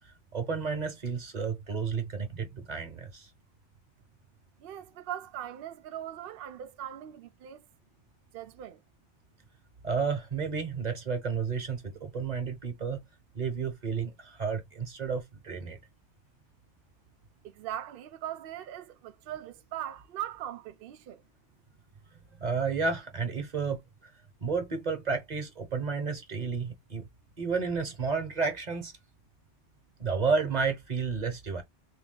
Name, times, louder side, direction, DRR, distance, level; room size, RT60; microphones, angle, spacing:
voice 1, 0.0-3.3 9.8-13.0 13.3-15.8 22.3-24.1 24.4-27.1 27.4-28.9 30.0-31.6, right 5 dB, 40° right, 1.0 m, -31 dB
voice 2, 4.6-7.6 8.3-8.8 17.4-21.2, right 11 dB, 60° right, 0.7 m, -40 dB
3.4 x 2.9 x 3.7 m
omnidirectional pair, 1.2 m